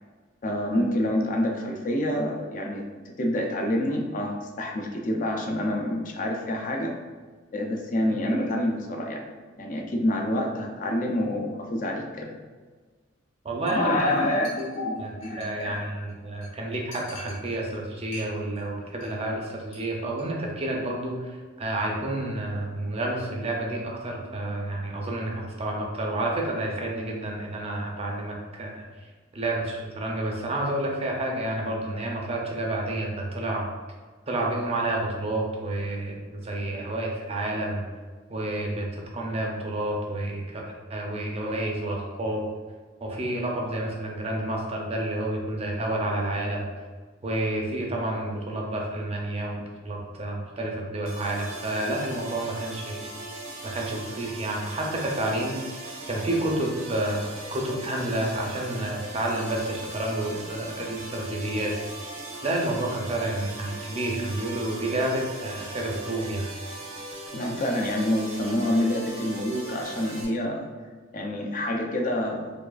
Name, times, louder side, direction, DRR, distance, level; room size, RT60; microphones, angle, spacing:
voice 1, 0.4-2.8 3.2-6.9 7.5-9.2 9.6-12.4 13.7-15.9 67.3-70.7 71.1-72.5, left 1 dB, 40° left, 1 dB, 0.4 m, -27 dB
voice 2, 13.4-14.1 14.6-14.7 15.0-15.1 15.4-33.7 34.3-37.8 38.3-42.5 43.0-46.7 47.2-53.1 53.6-55.6 56.1-61.8 62.4-66.5, right 1 dB, 30° right, -1 dB, 0.5 m, -30 dB
Chink clink, 13.7-13.8 14.1-14.2 14.4-15.8 16.1-16.2 16.4-16.5 16.9-17.8 18.1-18.6 18.9-19.2 19.4-19.8 20.1-20.2, left 1 dB, 70° left, 1.1 m, -46 dB
sound 1, 51.1-70.3, right 2 dB, 90° right, 1.0 m, -39 dB
4.6 x 2.3 x 2.3 m, 1.4 s
head